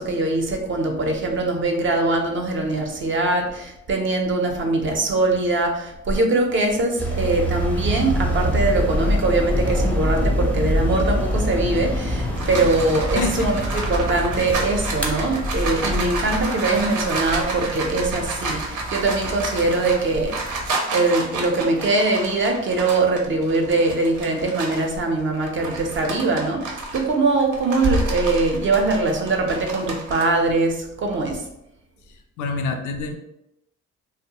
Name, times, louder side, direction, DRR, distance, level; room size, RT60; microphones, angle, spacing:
voice 1, 0.0-20.4 20.9-31.4, right 2 dB, 40° right, 3 dB, 0.6 m, -22 dB
sound 1, 7.0-20.7, equal, 5° left, 0.5 m, -26 dB
sound 2, 11.9-24.9 25.3-30.2, right 3 dB, 90° right, 0.7 m, -31 dB
voice 2, 13.2-13.8 32.4-33.2, left 4 dB, 80° left, 5 dB, 0.5 m, -27 dB
2.7 x 2.1 x 2.8 m, 0.84 s
cardioid pair, 90°, 30 cm